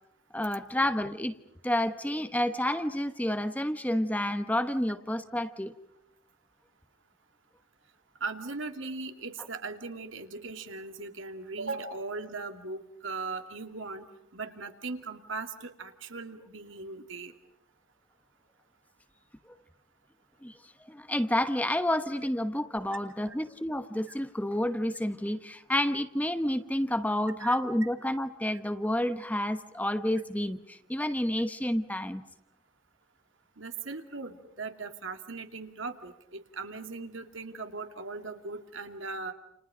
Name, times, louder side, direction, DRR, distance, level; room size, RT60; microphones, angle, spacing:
voice 1, 0.3-1.3 1.6-5.7 20.4-20.5 20.9-32.2, left 1 dB, 10° left, 9 dB, 1.1 m, -29 dB
voice 2, 8.2-14.1 14.3-17.3 23.3-23.4 27.4-27.6 33.6-39.3, right 3 dB, 70° right, 6 dB, 2.6 m, -39 dB
29.5 x 29.5 x 5.1 m, 0.81 s
head